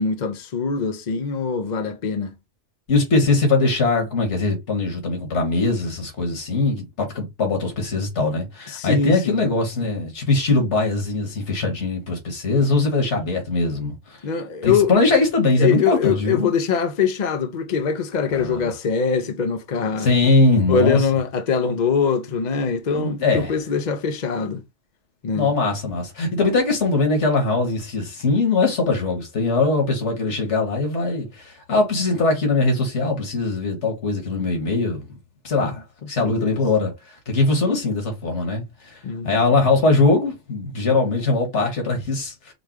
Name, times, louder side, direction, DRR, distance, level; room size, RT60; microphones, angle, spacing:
voice 1, 0.0-2.3 8.7-9.4 14.2-15.0 15.6-20.1 20.7-24.6 25.2-25.5 36.0-36.6 39.0-39.4, left 6 dB, 50° left, 0.6 m, -23 dB
voice 2, 2.9-14.2 14.6-16.5 18.3-18.6 20.0-21.0 22.9-23.5 25.4-35.1 35.4-39.0 39.2-42.5, left 3 dB, 75° left, 2.0 m, -21 dB
5.0 x 2.3 x 4.6 m
omnidirectional pair, 1.2 m